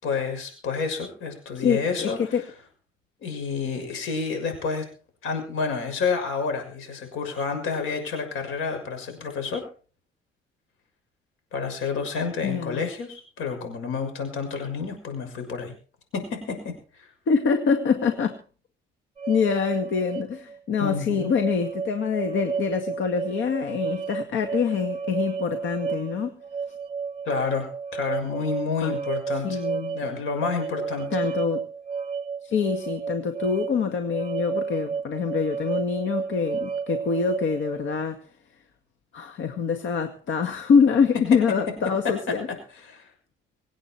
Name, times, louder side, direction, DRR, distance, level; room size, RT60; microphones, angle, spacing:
voice 1, 0.0-2.2 3.2-4.9 5.2-9.7 11.5-15.7 16.1-16.7 20.8-21.3 27.3-29.6 29.9-31.1 42.0-42.1 42.8-43.0, left 5 dB, 90° left, 6 dB, 6.3 m, -29 dB
voice 2, 1.6-2.4 12.4-12.9 17.3-18.4 19.3-26.3 28.8-29.0 29.4-30.0 31.1-31.7 32.4-38.2 39.1-42.5, left 6 dB, 75° left, 6 dB, 2.0 m, -25 dB
sound 1, 19.2-37.9, right 6 dB, 30° right, 1.7 m, -32 dB
25.5 x 8.9 x 4.6 m, 0.39 s
cardioid pair, 90°, 20 cm